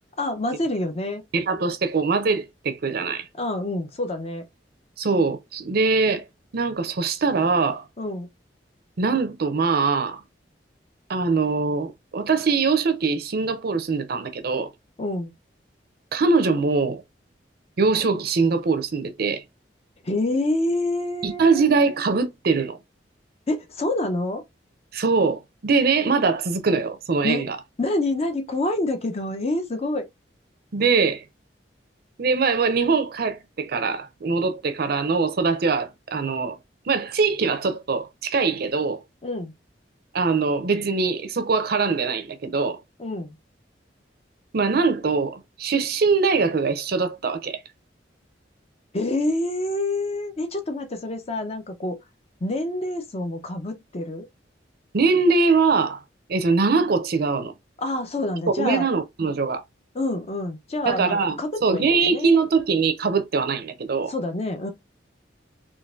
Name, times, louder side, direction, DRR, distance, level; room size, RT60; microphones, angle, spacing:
voice 1, 0.2-1.2 3.4-4.4 8.0-8.3 15.0-15.3 20.0-21.5 23.5-24.4 27.2-27.5 27.8-30.1 39.2-39.5 43.0-43.4 48.9-52.0 52.4-54.3 57.8-58.9 59.9-62.5 64.1-64.7, left 2 dB, 35° left, 0.7 m, -27 dB
voice 2, 1.3-3.3 5.0-6.2 6.5-7.8 9.0-10.2 11.1-14.7 16.1-17.0 17.8-19.4 21.2-22.8 24.9-27.6 30.7-31.2 32.2-36.6 36.9-39.0 40.1-42.8 44.5-47.6 54.9-56.0 56.3-57.5 58.6-59.6 60.9-64.1, right 4 dB, 60° right, 0.6 m, -22 dB
3.8 x 2.5 x 2.4 m
head